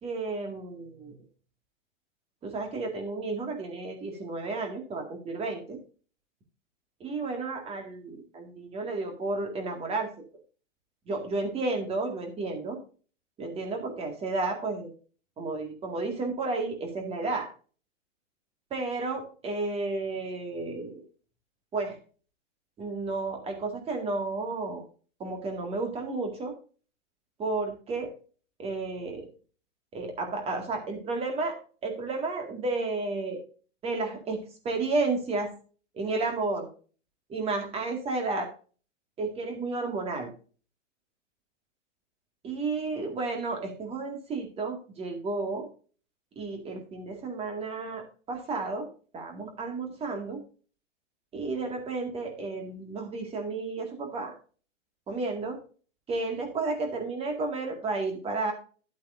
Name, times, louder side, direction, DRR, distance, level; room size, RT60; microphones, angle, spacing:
voice 1, 0.0-1.1 2.4-5.8 7.0-10.1 11.1-12.8 13.4-14.9 15.4-17.5 18.7-21.0 21.7-22.0 22.8-24.8 25.2-26.5 27.4-28.1 28.6-29.3 29.9-31.6 31.8-33.4 33.8-35.5 35.9-36.7 37.3-38.5 39.2-40.3 42.4-45.7 46.4-48.9 49.1-50.4 51.3-54.3 55.1-55.6 56.1-58.5, right 3 dB, 15° right, 4 dB, 2.0 m, -32 dB
12.0 x 8.2 x 2.6 m, 0.39 s
hypercardioid pair, 140°, 38 cm